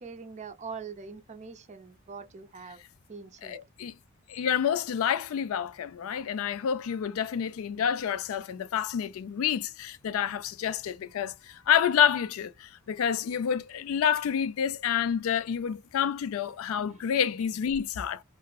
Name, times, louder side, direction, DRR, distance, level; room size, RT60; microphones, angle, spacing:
voice 1, 0.0-2.8 3.1-3.6 16.9-17.0, right 5 dB, 30° right, 0.4 m, -43 dB
voice 2, 3.4-3.9 4.3-18.2, left 8 dB, 70° left, 0.3 m, -28 dB
2.9 x 2.4 x 2.3 m
head